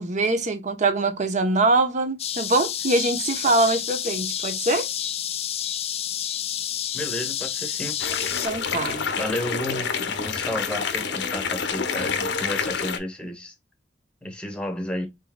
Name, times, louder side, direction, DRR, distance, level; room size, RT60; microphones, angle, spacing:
voice 1, 0.0-4.9 8.4-9.1, right 2 dB, 40° right, 0.8 m, -23 dB
sound 1, 2.2-8.5, left 10 dB, 35° left, 0.3 m, -29 dB
voice 2, 6.9-8.0 9.2-13.5 14.2-15.1, left 1 dB, 5° left, 1.0 m, -32 dB
sound 2, 8.0-13.0, left 6 dB, 65° left, 0.7 m, -28 dB
4.1 x 3.7 x 2.2 m
head